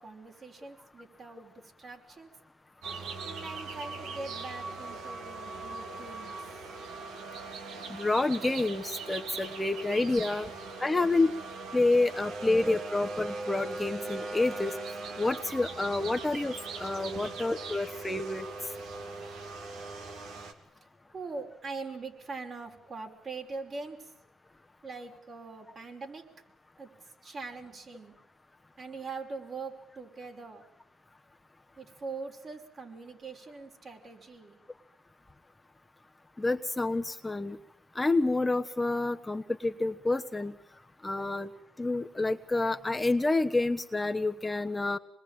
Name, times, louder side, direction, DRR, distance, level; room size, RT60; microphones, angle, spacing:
voice 1, 0.0-2.3 3.2-6.8 10.4-10.5 17.2-17.3 21.1-24.1 24.8-26.4 26.8-28.2 28.8-30.6 31.8-34.6, right 4 dB, 45° right, 3 dB, 5.3 m, -42 dB
sound 1, 2.8-20.5, right 3 dB, 80° right, 3.4 m, -40 dB
voice 2, 7.9-10.5 10.8-11.3 11.7-14.7 15.2-18.5 36.4-37.6 37.9-40.5 41.0-41.5 41.8-45.0, left 2 dB, 15° left, 6 dB, 1.1 m, -28 dB
26.5 x 21.0 x 9.1 m, 0.75 s
cardioid pair, 90°, 0 cm